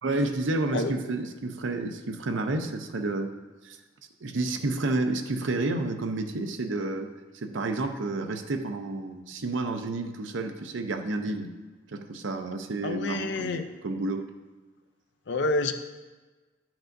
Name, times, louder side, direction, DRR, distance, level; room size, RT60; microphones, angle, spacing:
voice 1, 0.0-3.3 3.6-3.8 4.2-11.5 11.9-14.3, right 2 dB, 85° right, 7 dB, 0.6 m, -30 dB
voice 2, 12.8-13.7 15.3-15.7, left 2 dB, 65° left, 8 dB, 0.5 m, -28 dB
10.0 x 6.0 x 2.6 m, 1.3 s
head